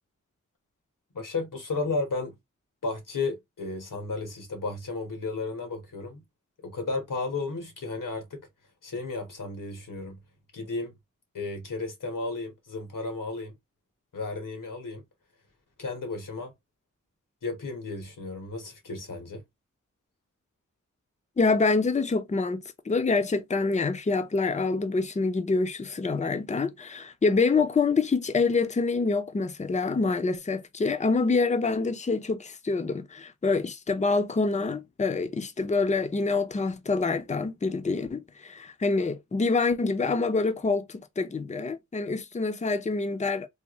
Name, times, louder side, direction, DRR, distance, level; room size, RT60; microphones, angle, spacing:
voice 1, 1.1-2.3 2.8-6.2 6.6-8.5 8.8-10.2 10.5-10.9 11.3-13.5 14.1-15.0 15.8-16.5 17.4-19.4, left 3 dB, 85° left, 1.4 m, -33 dB
voice 2, 21.4-43.5, left 4 dB, 25° left, 0.5 m, -26 dB
3.5 x 2.4 x 3.0 m
wide cardioid pair, 65°, 31 cm